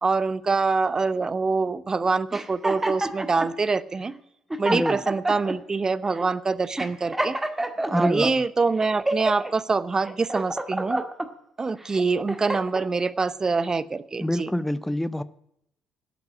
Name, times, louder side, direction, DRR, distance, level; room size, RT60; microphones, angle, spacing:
voice 1, 0.0-4.1 4.6-7.4 7.9-11.0 11.6-14.5, right 4 dB, 25° right, 18 dB, 0.8 m, -25 dB
sound 1, 2.3-3.5 4.1-4.2 4.5-5.6 6.1-6.3 6.8-8.3 8.8-9.5 10.0-11.3 11.8-12.9, right 1 dB, 10° right, 1.5 m, -28 dB
voice 2, 4.7-5.0 7.9-8.4 14.2-15.2, left 1 dB, 5° left, 16 dB, 0.6 m, -26 dB
13.0 x 8.2 x 9.9 m, 0.78 s
figure-of-eight pair, 50°, 2 cm